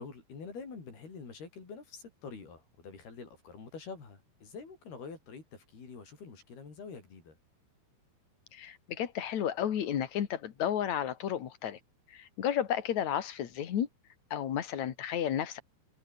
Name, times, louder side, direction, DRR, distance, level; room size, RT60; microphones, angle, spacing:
voice 1, 0.0-7.4, left 5 dB, 80° left, 8.1 m, -46 dB
voice 2, 8.5-11.8 12.1-13.9 14.3-15.6, left 9 dB, 55° left, 2.9 m, -32 dB
omnidirectional pair, 4.5 m